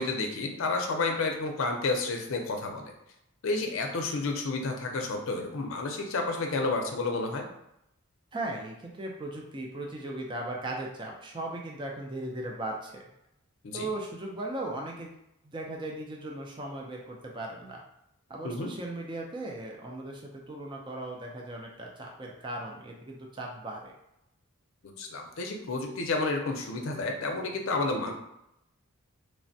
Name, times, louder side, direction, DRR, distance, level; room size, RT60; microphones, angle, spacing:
voice 1, 0.0-2.9 3.4-7.4 13.6-13.9 18.4-18.7 24.8-28.1, left 3 dB, 70° left, 3 dB, 0.5 m, -30 dB
voice 2, 8.3-13.0 13.7-15.1 15.4-17.8 18.3-23.9, right 2 dB, 20° right, 0 dB, 0.3 m, -37 dB
3.2 x 2.1 x 2.6 m, 0.83 s
head